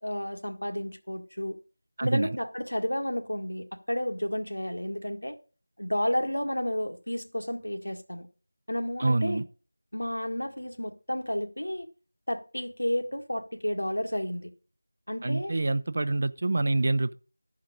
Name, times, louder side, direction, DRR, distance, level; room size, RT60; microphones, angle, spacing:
voice 1, 0.0-1.6 2.0-5.4 5.8-8.3 8.7-9.4 9.9-11.9 12.3-14.5 15.1-15.5, equal, 90° left, 1.7 m, -31 dB
voice 2, 2.0-2.3 9.0-9.4 15.2-17.1, right 2 dB, 40° right, 0.5 m, -26 dB
13.0 x 4.7 x 5.1 m
figure-of-eight pair, 175°, 0 cm